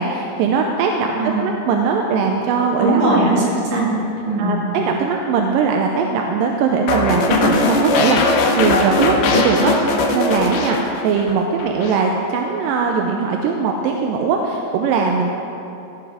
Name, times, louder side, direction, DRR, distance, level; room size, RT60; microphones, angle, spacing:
voice 1, 0.0-3.0 4.4-15.3, right 5 dB, 80° right, 1 dB, 2.2 m, -20 dB
voice 2, 1.2-1.5 2.8-4.0 4.3-4.6, right 2 dB, 55° right, -6 dB, 3.7 m, -19 dB
sound 1, 6.9-11.3 11.6-12.0, left 3 dB, 85° left, 2.9 m, -19 dB
16.0 x 7.0 x 4.9 m, 2.8 s
omnidirectional pair, 4.3 m